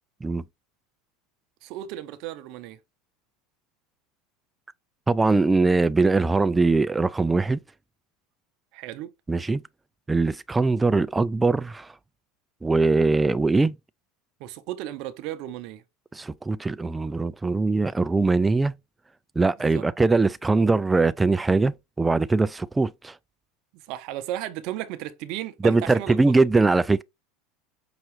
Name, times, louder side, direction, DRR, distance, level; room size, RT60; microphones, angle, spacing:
voice 1, 1.6-2.8 8.7-9.1 14.4-15.8 19.6-19.8 23.7-26.2, right 13 dB, 60° right, 0.6 m, -34 dB
voice 2, 5.1-7.6 9.3-9.6 10.1-11.9 12.6-13.8 16.1-18.7 19.4-23.1 25.6-27.0, right 3 dB, 15° right, 0.3 m, -21 dB
5.7 x 2.4 x 3.1 m
hypercardioid pair, 90°, 0 cm